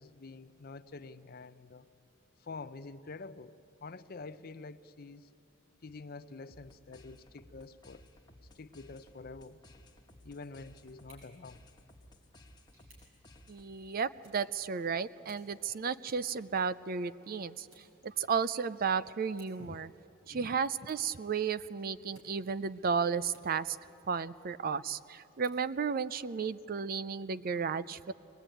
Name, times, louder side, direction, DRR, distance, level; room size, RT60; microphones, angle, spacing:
voice 1, 0.0-1.9 2.4-5.3 5.8-8.1 8.5-9.6 10.2-11.6 19.6-19.8 20.3-20.5, left 3 dB, 45° left, 0.6 m, -47 dB
sound 1, 6.5-13.9, left 1 dB, 20° left, 1.3 m, -58 dB
sound 2, 10.9-23.9 24.4-26.5, right 1 dB, 80° right, 7.3 m, -68 dB
voice 2, 13.5-19.9 20.3-23.8 24.1-28.1, right 6 dB, 40° right, 0.4 m, -33 dB
24.0 x 20.0 x 9.0 m
head